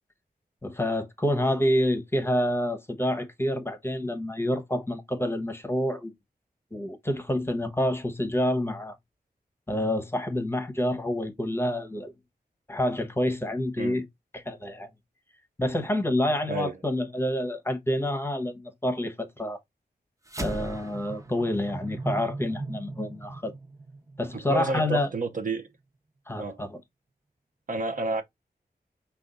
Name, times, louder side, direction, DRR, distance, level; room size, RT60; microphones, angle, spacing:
voice 1, 0.6-6.1 6.7-8.9 9.7-12.1 12.7-14.0 14.3-14.9 15.6-19.6 20.4-23.5 24.2-25.1 26.3-26.8, left 1 dB, 15° left, 0.9 m, -28 dB
sound 1, 20.3-24.9, right 2 dB, 20° right, 0.8 m, -38 dB
voice 2, 24.3-25.7 26.4-26.6 27.7-28.2, right 3 dB, 55° right, 0.7 m, -30 dB
5.0 x 2.3 x 3.8 m
wide cardioid pair, 110°, 17 cm